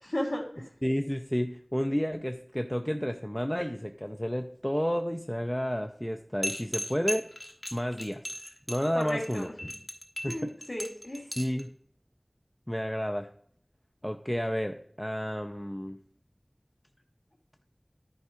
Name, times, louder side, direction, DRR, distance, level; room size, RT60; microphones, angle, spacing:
voice 1, 0.1-0.7 8.9-9.7 10.3-11.3, left 1 dB, 45° left, -6 dB, 2.1 m, -34 dB
voice 2, 0.8-7.3 7.7-8.2 8.7-9.5 10.2-10.5 11.4-11.7 12.7-13.3 14.0-16.0, equal, 10° left, 5 dB, 0.5 m, -31 dB
sound 1, 6.4-11.6, left 1 dB, 30° left, 1.2 m, -36 dB
10.5 x 4.7 x 5.0 m, 0.62 s
wide cardioid pair, 40°, 0 cm